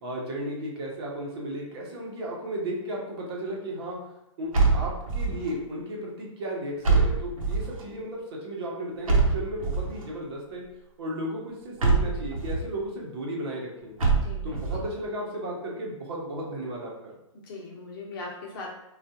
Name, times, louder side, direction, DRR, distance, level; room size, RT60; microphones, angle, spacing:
voice 1, 0.0-4.0 4.4-10.6 11.0-13.9 14.4-17.1, right 1 dB, 50° right, -3 dB, 0.9 m, -34 dB
sound 1, 4.5-5.5 6.8-7.8 9.1-10.0 11.8-12.7 14.0-14.8, right 4 dB, 90° right, 0.9 m, -24 dB
voice 2, 14.1-14.8 17.4-18.7, left 3 dB, 45° left, -2 dB, 0.9 m, -40 dB
3.4 x 2.4 x 2.8 m, 0.87 s
hypercardioid pair, 150°, 17 cm